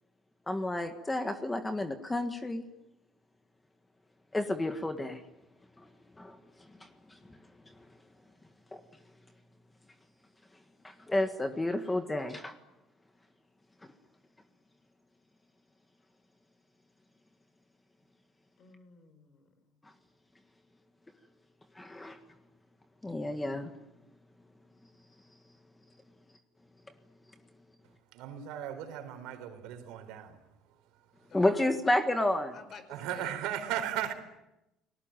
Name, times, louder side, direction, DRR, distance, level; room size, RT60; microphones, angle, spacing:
voice 1, 0.5-2.6 4.3-5.2 5.8-5.9 6.2-6.4 6.8-7.4 7.7-7.8 8.7-8.8 10.8-12.6 19.8-19.9 21.7-22.2 23.0-23.7 31.3-32.6, left 1 dB, 10° left, 1.7 m, -31 dB
voice 2, 18.6-19.5 31.3-31.5 32.5-33.4, left 6 dB, 45° left, 5.0 m, -50 dB
voice 3, 28.1-30.4 32.9-34.1, right 11 dB, 85° right, 4.4 m, -36 dB
29.5 x 20.0 x 9.1 m
cardioid pair, 135°, 0 cm